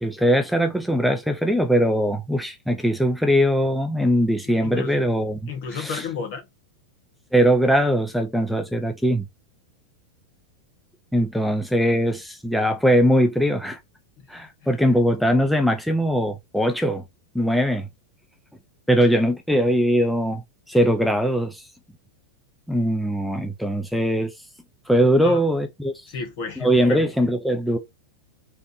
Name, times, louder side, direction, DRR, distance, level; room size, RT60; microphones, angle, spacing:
voice 1, 0.0-6.0 7.3-9.2 11.1-13.8 14.3-17.0 17.3-17.9 18.9-21.7 22.7-24.3 24.9-26.1 26.6-27.8, equal, ahead, 0.5 m, -21 dB
voice 2, 4.5-5.0 5.5-6.5 14.2-14.3 25.2-25.4 26.1-27.1, left 5 dB, 60° left, 1.3 m, -32 dB
3.4 x 2.5 x 2.7 m
hypercardioid pair, 115°, 0 cm